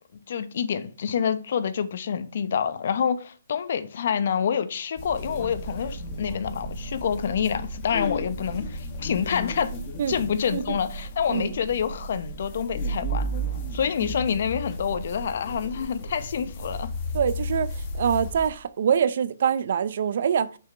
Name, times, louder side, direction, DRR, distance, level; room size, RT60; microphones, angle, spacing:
voice 1, 0.3-9.7 10.1-13.3 13.7-16.9, left 7 dB, 50° left, 1.1 m, -27 dB
sound 1, 5.0-18.5, equal, 25° left, 1.9 m, -34 dB
voice 2, 17.1-20.6, right 8 dB, 50° right, 0.6 m, -25 dB
6.7 x 6.1 x 5.6 m
hypercardioid pair, 165°, 0 cm